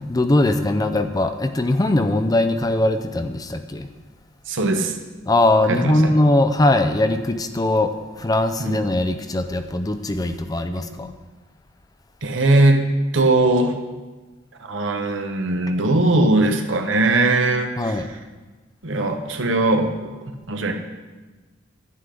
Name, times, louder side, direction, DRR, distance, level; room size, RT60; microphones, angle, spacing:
voice 1, 0.1-3.9 5.3-7.9 8.2-11.1 17.8-18.1, left 1 dB, 20° left, 8 dB, 0.5 m, -20 dB
voice 2, 4.5-4.9 5.7-6.1 8.6-8.8 10.2-10.4 10.7-11.0 12.2-12.8 13.1-13.7 14.6-18.0 18.8-19.9 20.5-20.7, right 2 dB, 70° right, 5 dB, 1.1 m, -20 dB
11.0 x 10.0 x 3.8 m, 1.2 s
head